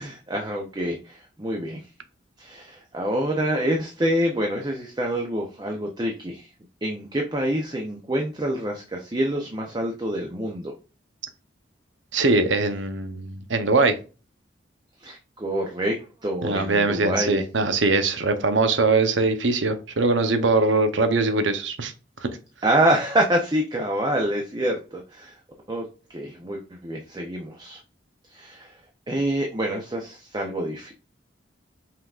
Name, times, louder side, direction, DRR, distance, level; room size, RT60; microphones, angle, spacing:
voice 1, 0.0-1.8 2.4-6.5 6.8-10.7 15.0-17.4 22.6-25.3 25.7-27.8 28.3-28.7 29.1-30.9, right 1 dB, 20° right, 0.6 m, -26 dB
voice 2, 12.1-14.0 16.4-21.9 22.2-22.3, right 3 dB, 80° right, 0.8 m, -22 dB
5.6 x 3.6 x 2.4 m
head